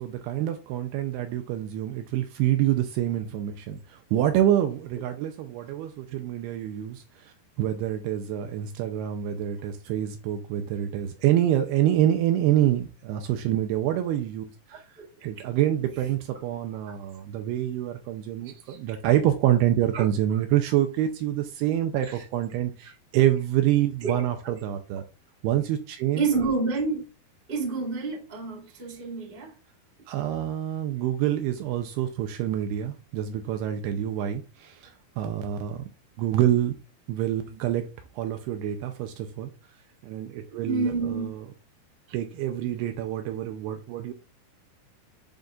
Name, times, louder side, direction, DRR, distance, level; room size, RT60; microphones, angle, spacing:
voice 1, 0.0-14.5 15.2-25.0 25.4-26.2 30.1-34.9 35.2-35.8 36.2-36.8 37.1-37.9 38.2-39.5 40.0-41.5 42.1-44.1, right 12 dB, 80° right, 2.4 m, -26 dB
voice 2, 26.1-27.0 27.5-29.5 40.6-41.3, right 4 dB, 25° right, 1.2 m, -28 dB
10.5 x 3.9 x 2.4 m
omnidirectional pair, 4.9 m